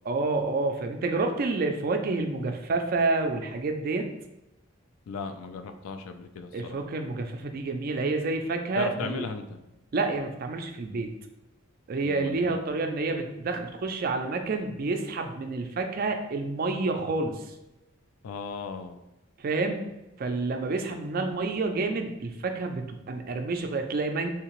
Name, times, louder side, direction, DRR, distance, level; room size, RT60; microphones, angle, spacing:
voice 1, 0.1-4.1 6.5-9.3 9.9-11.1 11.9-17.6 19.4-19.9 20.2-24.3, right 3 dB, 40° right, 5 dB, 0.3 m, -29 dB
voice 2, 5.1-6.8 8.8-9.6 12.0-12.6 18.2-19.0, left 5 dB, 75° left, 7 dB, 0.3 m, -36 dB
3.5 x 2.8 x 3.0 m, 0.97 s
head